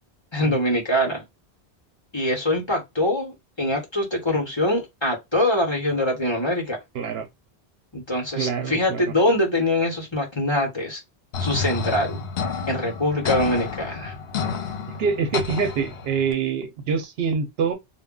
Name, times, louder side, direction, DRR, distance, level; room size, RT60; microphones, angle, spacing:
voice 1, 0.3-1.2 2.1-6.8 7.9-11.0 11.4-12.2 12.7-14.1, left 1 dB, 30° left, 0.9 m, -23 dB
voice 2, 6.9-7.3 8.4-9.0 15.0-17.7, right 5 dB, 75° right, 0.8 m, -25 dB
sound 1, 11.3-16.3, left 5 dB, 75° left, 0.9 m, -30 dB
2.2 x 2.1 x 3.6 m
omnidirectional pair, 1.1 m